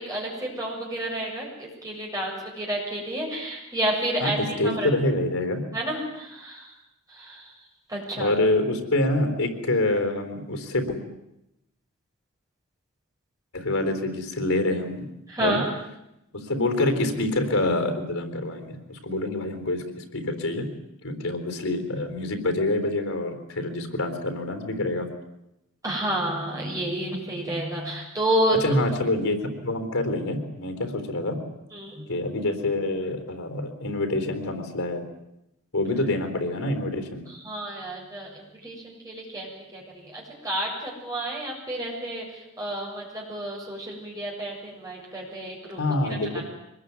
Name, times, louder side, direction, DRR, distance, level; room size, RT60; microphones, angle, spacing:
voice 1, 0.0-4.9 5.7-6.7 7.1-7.5 7.9-8.3 15.3-15.7 25.8-28.6 31.7-32.1 37.3-45.8 46.1-46.4, right 1 dB, 15° right, -2 dB, 7.2 m, -30 dB
voice 2, 4.6-5.6 8.2-11.0 13.5-15.0 15.4-15.6 16.3-20.7 21.0-25.1 28.6-31.4 32.1-35.0 35.7-37.2 45.8-46.4, left 2 dB, 90° left, 7 dB, 3.8 m, -26 dB
24.0 x 21.0 x 9.6 m, 0.86 s
head